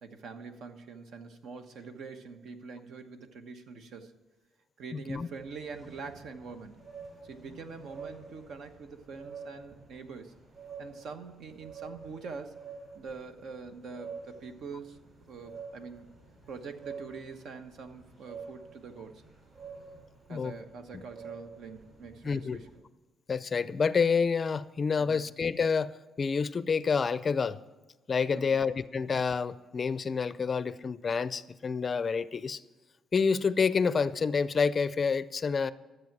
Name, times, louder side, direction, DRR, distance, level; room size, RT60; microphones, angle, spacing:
voice 1, 0.0-4.1 4.8-6.8 7.2-10.3 10.8-12.6 12.9-15.0 15.3-16.1 16.5-19.2 20.3-22.8 25.0-25.3 28.3-28.7, right 4 dB, 70° right, 7 dB, 1.1 m, -44 dB
voice 2, 4.9-5.3 20.3-20.5 20.9-21.0 22.2-22.6 23.3-27.6 28.1-32.6 33.1-35.7, left 5 dB, 35° left, 16 dB, 0.4 m, -28 dB
sound 1, 5.3-22.8, right 5 dB, 55° right, 4.3 m, -49 dB
13.5 x 7.8 x 6.0 m, 1.2 s
cardioid pair, 120°, 0 cm